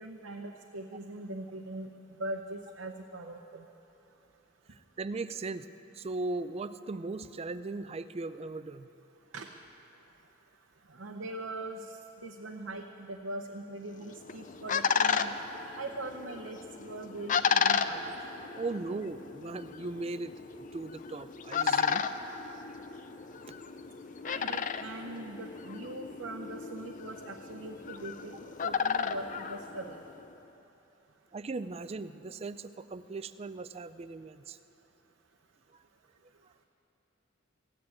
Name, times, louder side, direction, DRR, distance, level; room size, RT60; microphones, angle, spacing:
voice 1, 0.0-1.9 2.2-3.6 9.3-9.5 10.9-11.9 12.2-15.4 15.8-18.0 24.2-30.0, right 2 dB, 70° right, 2 dB, 0.8 m, -41 dB
voice 2, 4.7-5.7 5.9-8.9 17.3-17.4 18.5-22.1 23.5-23.6 31.3-34.6, right 3 dB, 30° right, 13 dB, 0.4 m, -38 dB
sound 1, 14.0-30.3, left 6 dB, 40° left, 0.5 m, -33 dB
15.0 x 9.7 x 8.7 m, 3.0 s
head